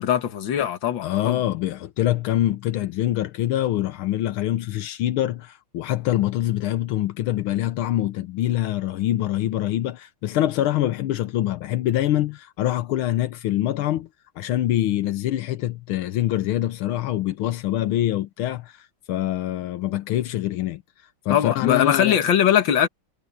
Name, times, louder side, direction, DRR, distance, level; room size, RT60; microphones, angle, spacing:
voice 1, 0.0-1.4 21.3-22.9, left 10 dB, 65° left, 2.1 m, -21 dB
voice 2, 1.0-14.1 14.4-20.8 21.2-22.2, left 13 dB, 85° left, 1.6 m, -25 dB
omnidirectional pair, 2.3 m